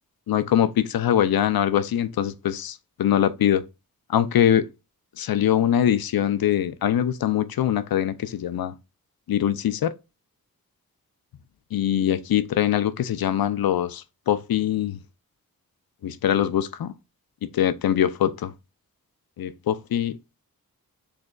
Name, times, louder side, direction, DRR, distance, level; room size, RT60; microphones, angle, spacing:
voice 1, 0.3-3.6 4.1-4.7 5.2-8.7 9.3-9.9 11.7-15.0 16.0-16.9 17.5-18.5 19.4-20.1, left 10 dB, 75° left, 0.6 m, -23 dB
6.4 x 3.3 x 2.3 m
cardioid pair, 70°, 36 cm